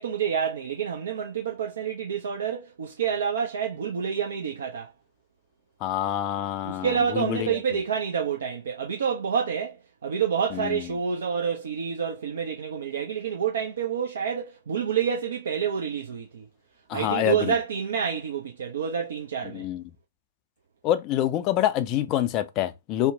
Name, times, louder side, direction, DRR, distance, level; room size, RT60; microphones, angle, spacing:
voice 1, 0.0-4.9 6.6-9.8 10.0-16.4 16.9-19.6, right 7 dB, 60° right, 0.5 m, -28 dB
voice 2, 5.8-6.9 7.1-7.6 10.5-10.9 16.9-17.5 19.5-19.8 20.8-23.1, left 12 dB, 30° left, 0.4 m, -26 dB
2.8 x 2.1 x 3.6 m
figure-of-eight pair, 110°, 0 cm